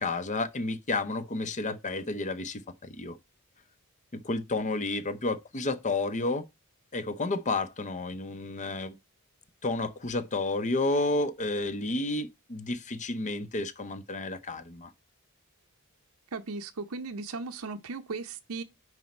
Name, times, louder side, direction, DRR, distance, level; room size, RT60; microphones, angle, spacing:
voice 1, 0.0-3.2 4.1-6.4 6.9-8.9 9.6-14.9, left 2 dB, 35° left, 0.8 m, -31 dB
voice 2, 16.3-18.6, right 4 dB, 75° right, 0.7 m, -37 dB
9.9 x 4.2 x 4.4 m
head